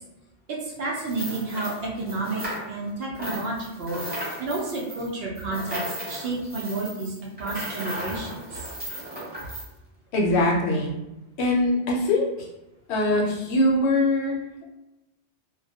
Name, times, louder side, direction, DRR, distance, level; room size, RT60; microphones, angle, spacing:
voice 1, 0.5-4.0 4.4-8.4, right 2 dB, 65° right, -2 dB, 0.7 m, -31 dB
sound 1, 1.0-2.9 3.1-9.7, right 1 dB, 15° right, 0.4 m, -35 dB
voice 2, 10.1-11.0 11.4-12.5 12.9-14.6, left 1 dB, 70° left, -2 dB, 0.8 m, -22 dB
2.2 x 2.1 x 2.7 m, 0.94 s
omnidirectional pair, 1.2 m